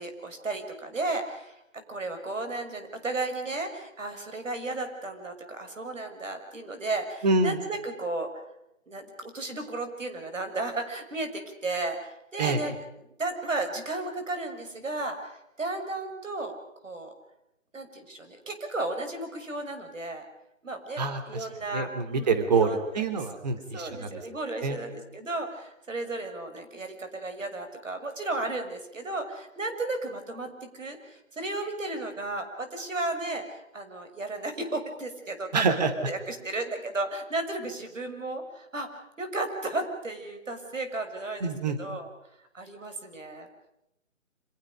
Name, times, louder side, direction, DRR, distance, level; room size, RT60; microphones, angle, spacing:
voice 1, 0.0-8.4 8.9-12.7 13.2-16.6 16.8-17.1 17.7-20.2 20.6-23.0 23.7-35.6 36.0-38.9 39.2-41.5 41.8-42.1 42.5-43.5, right 2 dB, 70° right, 6 dB, 6.7 m, -34 dB
voice 2, 7.2-7.6 12.4-12.6 21.0-21.5 21.7-24.2 24.6-24.8 35.5-35.9 41.4-41.8, right 4 dB, 30° right, 8 dB, 3.0 m, -26 dB
29.0 x 27.0 x 5.3 m, 0.86 s
figure-of-eight pair, 160°, 40 cm